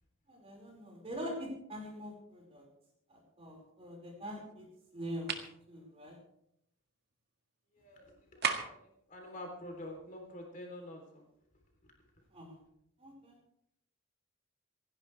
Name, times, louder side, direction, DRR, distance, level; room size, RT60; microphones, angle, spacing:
voice 1, 0.3-2.6 3.1-4.7 4.9-5.3 5.7-6.2 12.3-12.5 13.0-13.3, equal, 30° right, -1 dB, 5.2 m, -43 dB
sound 1, 5.3-5.5 8.4-8.9, right 6 dB, 50° right, 1.8 m, -33 dB
voice 2, 7.8-8.8 9.1-11.2, left 1 dB, 40° left, 1 dB, 3.6 m, -47 dB
27.0 x 11.5 x 3.4 m, 0.76 s
head